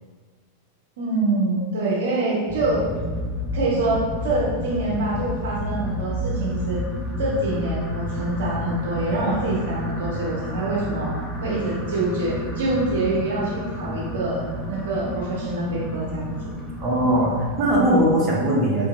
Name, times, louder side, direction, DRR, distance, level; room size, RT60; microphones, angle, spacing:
voice 1, 1.0-2.8 3.5-6.8 7.2-14.4 14.7-16.3, right 2 dB, 60° right, -5 dB, 0.7 m, -25 dB
sound 1, 2.5-18.1, equal, ahead, 0.5 m, -30 dB
voice 2, 16.8-18.9, right 1 dB, 25° right, -4 dB, 0.8 m, -20 dB
3.9 x 2.6 x 2.6 m, 1.5 s
figure-of-eight pair, 90°, 0 cm